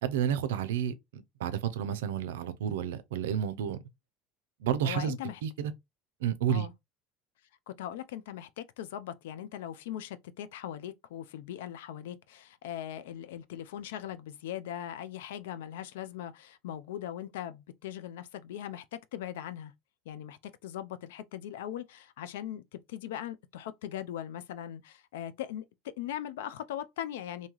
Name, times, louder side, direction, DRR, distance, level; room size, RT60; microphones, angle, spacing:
voice 1, 0.0-3.8 4.6-5.2 5.4-5.7 6.2-6.7, right 9 dB, 90° right, 0.4 m, -31 dB
voice 2, 4.8-5.4 6.5-6.7 7.7-19.7 20.1-27.5, left 11 dB, 85° left, 0.3 m, -40 dB
2.7 x 2.3 x 2.9 m
supercardioid pair, 95°, 0 cm